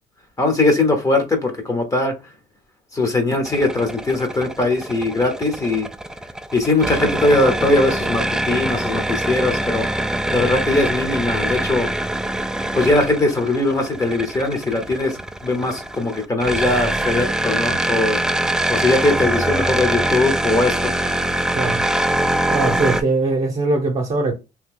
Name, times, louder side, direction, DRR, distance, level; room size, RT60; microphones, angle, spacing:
voice 1, 0.4-2.1 2.9-5.9 6.5-9.9 10.3-11.9 12.7-18.2 18.7-20.9, left 2 dB, 20° left, 0.8 m, -20 dB
sound 1, 3.5-23.0, right 1 dB, 5° right, 0.4 m, -23 dB
voice 2, 22.5-24.3, right 3 dB, 40° right, 0.9 m, -21 dB
2.9 x 2.6 x 3.6 m
cardioid pair, 110°, 17 cm